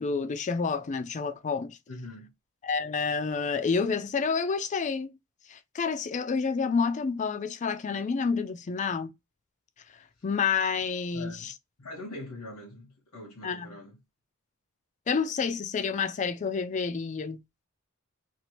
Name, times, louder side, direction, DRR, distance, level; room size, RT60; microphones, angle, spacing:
voice 1, 0.0-1.8 2.6-5.1 5.5-9.1 10.2-11.5 13.4-13.7 15.1-17.4, left 5 dB, 35° left, 0.3 m, -29 dB
voice 2, 1.9-2.3 11.1-11.5 11.8-14.0, left 1 dB, 85° left, 0.9 m, -42 dB
2.9 x 2.4 x 2.9 m
head